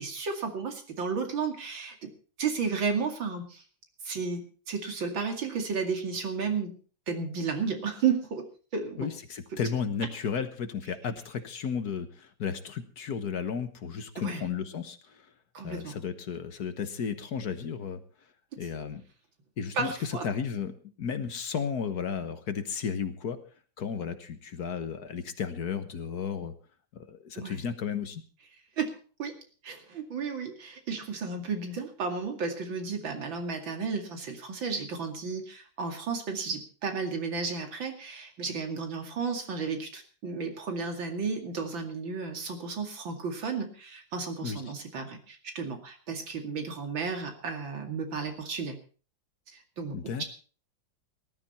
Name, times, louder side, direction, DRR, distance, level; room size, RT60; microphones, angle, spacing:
voice 1, 0.0-2.1 2.4-3.6 4.0-6.7 7.1-8.4 8.7-9.1 14.2-14.4 15.5-15.9 19.7-20.2 27.3-27.6 28.8-29.4 29.6-48.8 49.8-50.2, right 5 dB, 85° right, 4 dB, 3.1 m, -33 dB
voice 2, 9.0-15.3 15.6-18.0 18.6-19.0 19.6-20.7 21.0-23.4 23.8-26.5 26.9-28.2 44.4-44.6 49.9-50.2, left 6 dB, 55° left, 10 dB, 1.7 m, -33 dB
19.0 x 12.5 x 4.3 m, 0.39 s
omnidirectional pair, 2.1 m